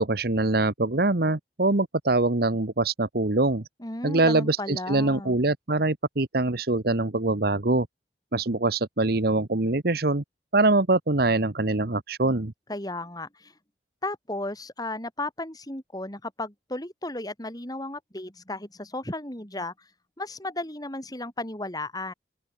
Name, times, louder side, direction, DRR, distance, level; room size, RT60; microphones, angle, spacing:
voice 1, 0.0-3.6 4.0-7.9 8.3-10.2 10.5-12.5, right 2 dB, 60° right, 1.3 m, -24 dB
voice 2, 3.8-5.4 12.7-13.6 14.0-22.1, left 2 dB, 20° left, 5.3 m, -34 dB
open air
head